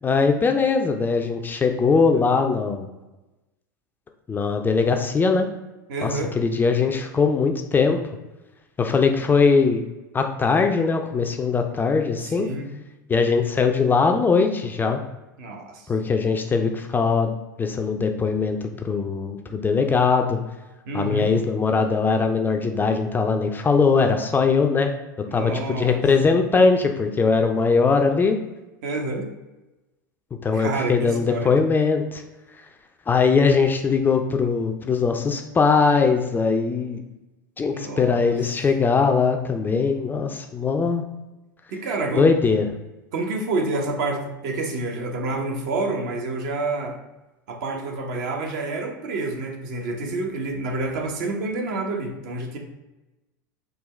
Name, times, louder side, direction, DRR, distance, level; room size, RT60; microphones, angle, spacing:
voice 1, 0.0-2.9 4.3-5.5 6.0-8.0 8.8-9.8 10.1-12.5 13.1-15.0 15.9-17.3 17.6-20.4 20.9-24.9 25.3-28.4 30.4-32.2 33.1-37.0 37.6-41.0 42.1-42.7, left 4 dB, 20° left, 5 dB, 0.3 m, -21 dB
voice 2, 5.9-6.3 12.2-12.7 15.4-15.9 20.9-21.3 25.3-26.0 28.8-29.3 30.5-31.5 37.7-38.4 41.7-42.3 43.1-47.0 47.5-52.6, right 2 dB, 65° right, 2 dB, 0.7 m, -28 dB
3.7 x 2.3 x 3.1 m, 1.0 s
hypercardioid pair, 90°, 11 cm